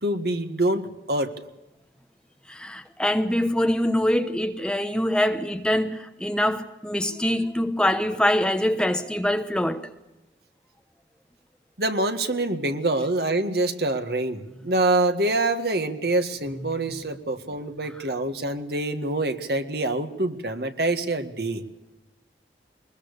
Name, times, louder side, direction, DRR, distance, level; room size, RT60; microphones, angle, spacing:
voice 1, 0.0-1.3 11.8-21.6, right 2 dB, 60° right, 1.8 m, -25 dB
voice 2, 2.5-9.9, left 1 dB, 5° left, 0.9 m, -24 dB
22.0 x 21.0 x 6.7 m
head